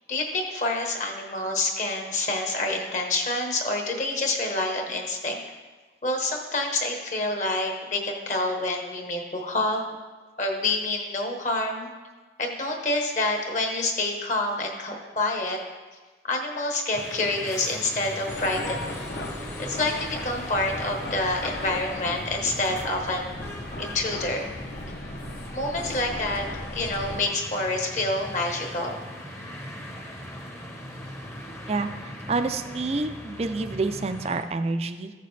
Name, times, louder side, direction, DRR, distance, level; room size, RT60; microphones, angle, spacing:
voice 1, 0.1-5.4 6.0-10.0 10.4-11.9 12.4-15.6 16.2-19.1 19.4-23.4 23.8-24.5 25.5-26.4 26.7-29.0, left 2 dB, 45° left, 2 dB, 1.2 m, -27 dB
sound 1, 16.9-34.4, equal, 15° left, 0.8 m, -39 dB
sound 2, 18.3-27.2, left 1 dB, 60° left, 0.9 m, -37 dB
voice 2, 32.3-35.1, right 3 dB, 35° right, 9 dB, 0.4 m, -28 dB
14.0 x 6.7 x 3.3 m, 1.3 s
head